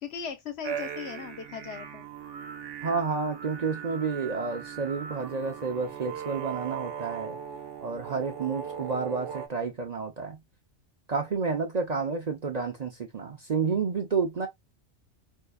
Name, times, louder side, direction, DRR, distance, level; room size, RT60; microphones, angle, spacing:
voice 1, 0.0-2.1, left 7 dB, 65° left, 1.0 m, -38 dB
sound 1, 0.6-9.5, right 8 dB, 80° right, 1.0 m, -39 dB
voice 2, 2.8-7.4 7.8-10.4 11.1-14.5, right 5 dB, 45° right, 0.6 m, -30 dB
4.5 x 2.6 x 2.3 m
omnidirectional pair, 1.2 m